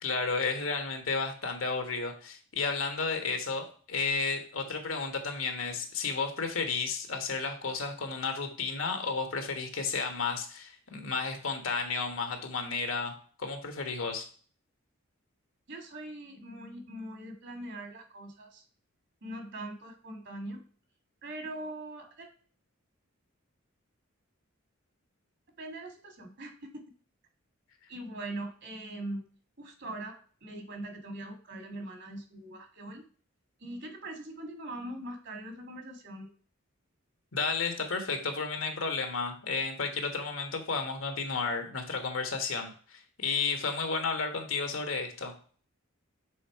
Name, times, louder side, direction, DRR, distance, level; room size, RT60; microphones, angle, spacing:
voice 1, 0.0-14.3 37.3-45.3, left 4 dB, 75° left, 5 dB, 1.4 m, -32 dB
voice 2, 15.7-18.6 19.2-20.6 21.2-22.3 25.6-26.8 27.9-29.2 29.6-30.1 30.4-33.0 33.6-36.3, right 1 dB, 60° right, 4 dB, 1.7 m, -41 dB
6.3 x 4.0 x 4.6 m, 0.44 s
head